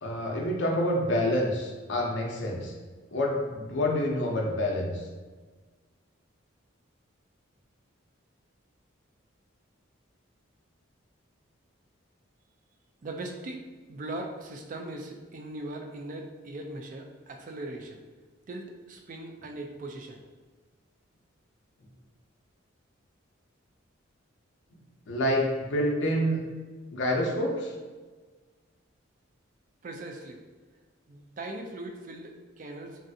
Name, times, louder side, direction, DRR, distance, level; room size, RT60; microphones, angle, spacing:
voice 1, 0.0-2.7 3.1-5.0 25.1-26.4 26.9-27.7, left 1 dB, 60° left, -1 dB, 0.5 m, -27 dB
voice 2, 13.0-13.6 13.9-18.0 18.5-20.2 29.8-30.4 31.1-32.9, right 2 dB, 40° right, 2 dB, 0.3 m, -39 dB
3.2 x 2.6 x 2.6 m, 1.4 s
head